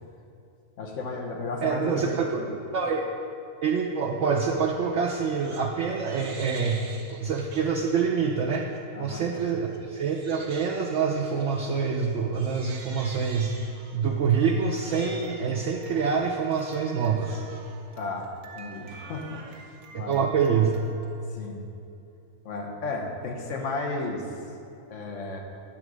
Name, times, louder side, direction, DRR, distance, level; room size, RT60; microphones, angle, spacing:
voice 1, 0.8-2.5 8.9-9.3 18.0-18.3 18.5-20.2 21.3-21.6 22.4-24.2 24.9-25.4, left 3 dB, 60° left, 2 dB, 1.3 m, -34 dB
voice 2, 1.6-2.5 2.7-3.0 3.6-8.7 9.0-13.5 13.9-17.4 19.9-20.8, right 6 dB, 65° right, 0 dB, 0.8 m, -26 dB
Crying sobbing, 5.1-5.7 6.0-8.1 8.5-8.8 9.3-21.3, right 4 dB, 80° right, 1.4 m, -47 dB
10.0 x 3.9 x 6.2 m, 2.7 s
omnidirectional pair, 1.5 m